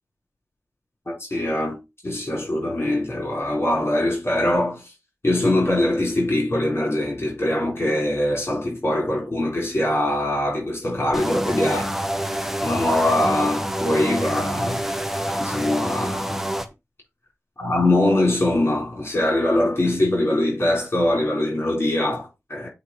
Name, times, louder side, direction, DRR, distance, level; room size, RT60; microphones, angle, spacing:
voice 1, 1.1-4.9 5.2-11.9 12.6-16.5 17.6-22.7, left 1 dB, 45° left, 3.9 m, -22 dB
sound 1, 11.1-16.7, equal, 5° right, 1.0 m, -27 dB
8.2 x 3.2 x 4.7 m
cardioid pair, 45°, 6 cm